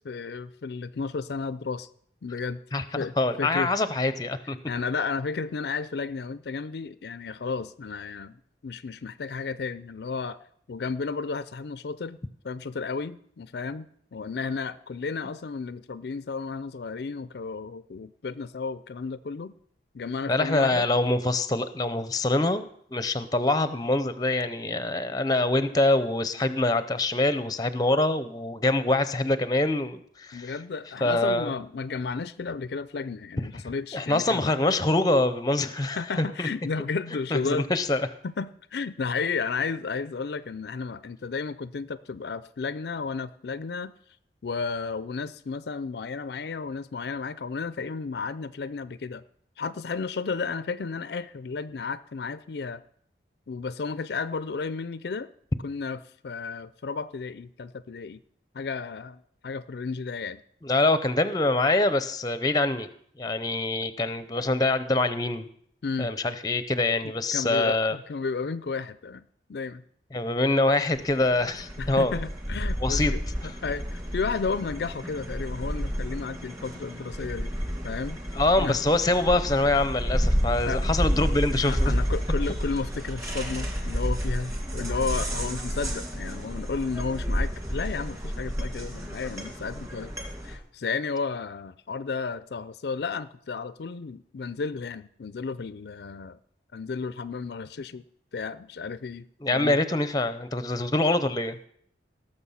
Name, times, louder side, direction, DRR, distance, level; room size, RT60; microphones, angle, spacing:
voice 1, 0.0-1.9 2.2-2.6 2.9-3.7 4.7-8.4 8.6-10.4 10.7-12.2 12.4-19.5 19.9-20.9 30.3-34.4 35.9-37.7 38.2-43.9 44.4-49.2 49.6-52.8 53.5-55.3 55.6-58.2 58.5-60.4 65.8-66.1 67.3-69.8 71.8-77.5 77.8-78.2 78.6-78.8 80.7-80.8 81.6-90.1 90.4-96.4 96.7-98.0 98.3-99.8, left 4 dB, 65° left, 15 dB, 0.4 m, -33 dB
voice 2, 2.7-4.6 20.3-22.7 22.9-30.5 31.0-31.5 33.5-36.5 37.3-38.0 60.6-62.9 63.2-65.5 66.0-68.0 70.1-72.1 72.8-73.1 73.4-73.5 78.3-81.9 99.4-101.7, left 2 dB, 20° left, 12 dB, 0.6 m, -25 dB
sound 1, 70.9-90.6, equal, 20° right, 2.3 m, -30 dB
18.0 x 6.8 x 5.6 m, 0.65 s
head